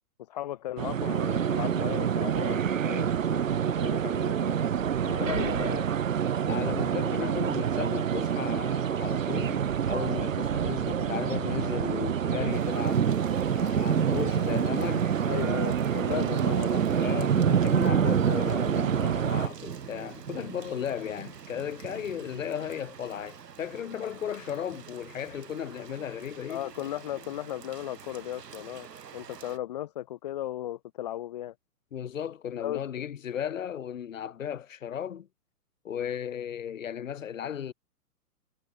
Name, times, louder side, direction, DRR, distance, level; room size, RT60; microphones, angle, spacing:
voice 1, 0.2-3.4 3.8-4.6 5.2-5.9 15.2-16.9 26.5-28.9 29.1-31.5 32.6-32.8, left 13 dB, 25° left, 1.8 m, -36 dB
sound 1, 0.8-19.5, right 8 dB, 55° right, 7.0 m, -28 dB
voice 2, 5.0-5.7 6.4-13.1 13.5-15.1 16.1-16.6 16.9-26.7 31.9-35.3 35.8-37.7, left 9 dB, 55° left, 3.3 m, -35 dB
Thunder / Rain, 12.5-29.5, right 7 dB, 85° right, 4.0 m, -32 dB
hypercardioid pair, 175°, 47 cm